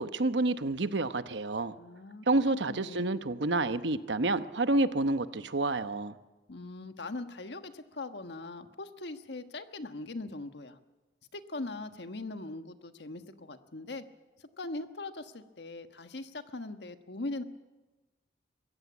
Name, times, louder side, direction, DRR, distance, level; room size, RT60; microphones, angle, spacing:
voice 1, 0.0-1.8 2.3-6.1, right 2 dB, 75° right, 12 dB, 0.9 m, -29 dB
voice 2, 1.8-3.1 6.5-10.8 11.3-14.0 14.4-17.4, left 2 dB, 70° left, 8 dB, 1.4 m, -41 dB
23.5 x 16.0 x 8.5 m, 1.2 s
head